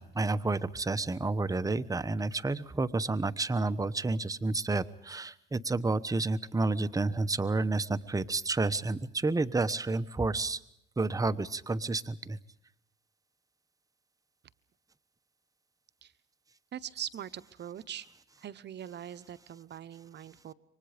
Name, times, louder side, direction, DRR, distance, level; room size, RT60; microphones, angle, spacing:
voice 1, 0.0-10.6 11.0-12.4, right 3 dB, 15° right, 13 dB, 1.1 m, -30 dB
voice 2, 16.7-18.1 18.4-20.5, right 10 dB, 60° right, 14 dB, 1.0 m, -42 dB
28.5 x 24.5 x 5.1 m, 0.72 s
cardioid pair, 90°, 20 cm